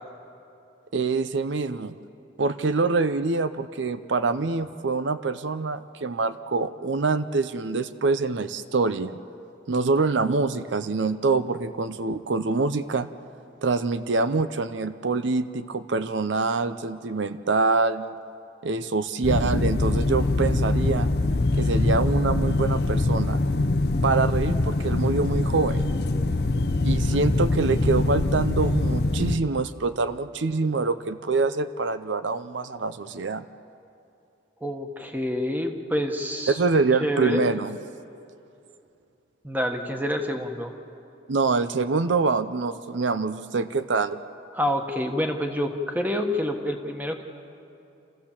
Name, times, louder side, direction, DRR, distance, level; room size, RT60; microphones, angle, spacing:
voice 1, 0.9-1.9 2.4-9.2 9.7-13.1 13.6-18.2 18.6-21.1 21.6-23.4 24.0-25.9 26.8-33.5 36.5-37.8 41.3-44.2, right 3 dB, 80° right, 12 dB, 0.6 m, -25 dB
sound 1, 19.2-29.4, left 2 dB, 55° left, 0.7 m, -23 dB
voice 2, 34.6-36.6 37.0-37.4 39.4-40.7 44.5-47.2, left 1 dB, 10° right, 4 dB, 1.3 m, -27 dB
28.5 x 15.0 x 7.3 m, 2.7 s
head